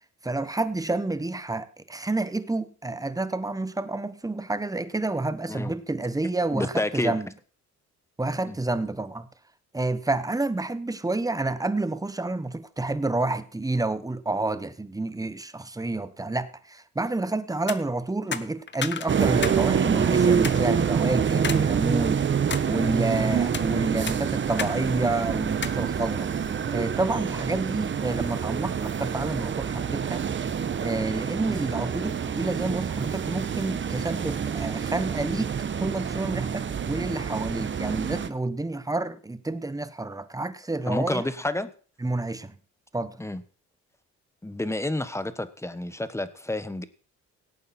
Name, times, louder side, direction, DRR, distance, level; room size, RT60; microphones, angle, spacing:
voice 1, 0.2-7.3 8.2-9.3 9.7-22.3 22.6-26.4 26.7-30.2 30.8-41.2 42.0-42.6 42.9-43.2, right 2 dB, 10° right, 1.2 m, -29 dB
voice 2, 6.5-7.1 8.5-8.6 40.9-41.7 43.2-43.4 44.4-46.8, left 1 dB, 10° left, 1.2 m, -29 dB
sound 1, 17.5-17.8 18.3-19.6 19.9-20.0 20.4-20.6 21.4-21.6 22.1-22.7 23.3-23.7 24.1-24.8 25.0-25.1 25.6-25.8, left 6 dB, 35° left, 1.1 m, -32 dB
sound 2, 19.1-38.3, right 7 dB, 40° right, 1.0 m, -27 dB
17.5 x 8.6 x 4.3 m
cardioid pair, 90°, 30 cm